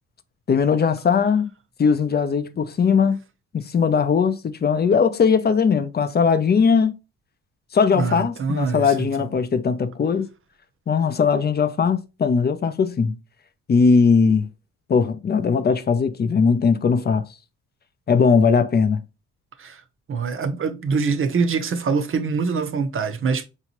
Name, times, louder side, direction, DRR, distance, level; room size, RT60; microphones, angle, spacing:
voice 1, 0.5-1.5 1.8-3.2 3.5-6.9 7.7-10.3 10.9-13.2 13.7-14.5 14.9-17.3 18.1-19.0, left 5 dB, 35° left, 0.6 m, -19 dB
voice 2, 7.9-9.3 19.6-19.8 20.1-23.5, right 5 dB, 45° right, 0.8 m, -24 dB
4.7 x 2.8 x 3.0 m
cardioid pair, 90°, 30 cm